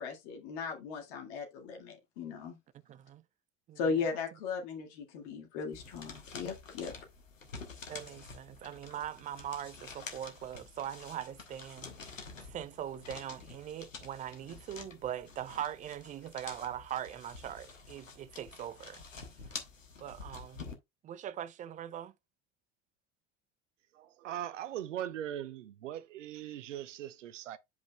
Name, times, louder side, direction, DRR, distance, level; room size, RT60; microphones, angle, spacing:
voice 1, 0.0-2.6 3.8-6.9, left 5 dB, 55° left, 1.9 m, -37 dB
voice 2, 2.9-3.2 3.7-3.8 7.9-11.9 12.5-19.0 20.0-20.7 21.0-22.1, right 10 dB, 20° right, 0.4 m, -41 dB
sound 1, 5.7-20.7, left 4 dB, 80° left, 1.3 m, -48 dB
voice 3, 23.9-27.6, right 11 dB, 70° right, 0.7 m, -40 dB
9.2 x 5.2 x 2.3 m
figure-of-eight pair, 70°, 38 cm